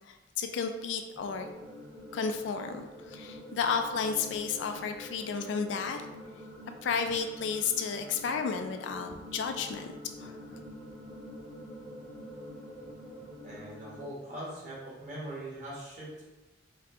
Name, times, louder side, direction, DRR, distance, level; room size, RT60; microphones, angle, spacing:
voice 1, 0.1-1.5 2.1-6.1 6.8-9.9 10.2-10.6, left 5 dB, 75° left, 6 dB, 0.3 m, -32 dB
sound 1, 1.1-14.0, left 1 dB, ahead, 0.7 m, -46 dB
voice 2, 13.4-16.2, right 1 dB, 45° right, -6 dB, 1.2 m, -41 dB
3.9 x 2.1 x 2.6 m, 1.1 s
head